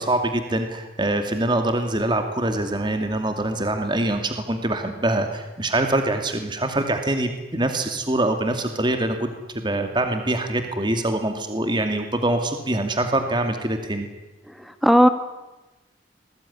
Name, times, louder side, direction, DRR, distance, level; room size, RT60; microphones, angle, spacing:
voice 1, 0.0-9.3 9.5-14.1, right 1 dB, 25° right, 6 dB, 2.5 m, -24 dB
voice 2, 14.5-15.1, equal, ahead, 9 dB, 1.2 m, -17 dB
27.0 x 21.5 x 10.0 m, 1.1 s
head